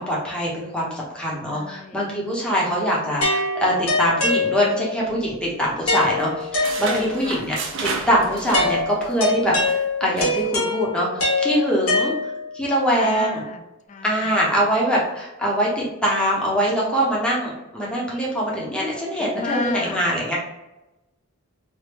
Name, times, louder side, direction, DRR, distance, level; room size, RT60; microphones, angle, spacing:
voice 1, 0.0-7.6 7.8-12.1 12.5-13.4 14.0-20.4, equal, 5° left, -5 dB, 0.8 m, -23 dB
voice 2, 1.5-2.1 6.8-7.5 13.0-14.2 19.3-20.0, left 4 dB, 30° left, 6 dB, 0.3 m, -32 dB
sound 1, 3.2-5.0 5.9-7.3 8.5-12.6, left 2 dB, 75° left, 1.4 m, -24 dB
sound 2, 5.1-5.9 6.2-9.2 9.5-9.7 10.2-10.4, right 4 dB, 55° right, 0.5 m, -32 dB
3.4 x 2.5 x 3.0 m, 0.97 s
head